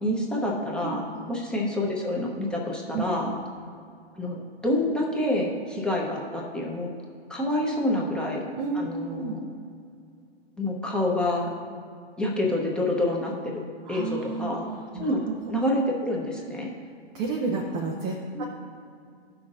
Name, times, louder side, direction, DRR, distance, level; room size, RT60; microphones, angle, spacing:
voice 1, 0.0-3.3 4.1-6.9 7.3-8.4 8.7-9.4 10.6-11.5 12.2-13.6 13.9-14.7 14.9-15.2 15.5-16.7 18.3-18.4, left 1 dB, 5° left, -2 dB, 0.8 m, -27 dB
voice 2, 8.2-9.3 13.8-15.3 17.1-18.4, right 4 dB, 20° right, 0 dB, 0.4 m, -32 dB
15.0 x 5.9 x 2.5 m, 2.4 s
hypercardioid pair, 135°, 32 cm